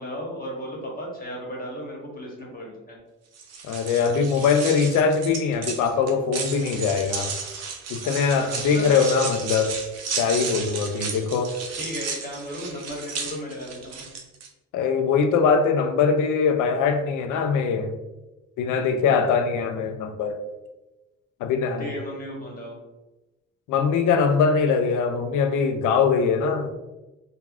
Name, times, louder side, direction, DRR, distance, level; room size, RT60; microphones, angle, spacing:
voice 1, 0.0-3.0 8.5-8.9 11.8-14.0 21.8-22.8, equal, 30° left, -2 dB, 1.1 m, -35 dB
sound 1, 3.3-14.5, right 5 dB, 60° right, 0.6 m, -33 dB
voice 2, 3.7-7.3 7.9-9.7 10.2-11.5 14.7-17.9 18.6-20.4 21.4-21.9 23.7-26.7, left 5 dB, 80° left, 8 dB, 0.4 m, -22 dB
3.4 x 2.3 x 2.4 m, 1.1 s
cardioid pair, 90°, 30 cm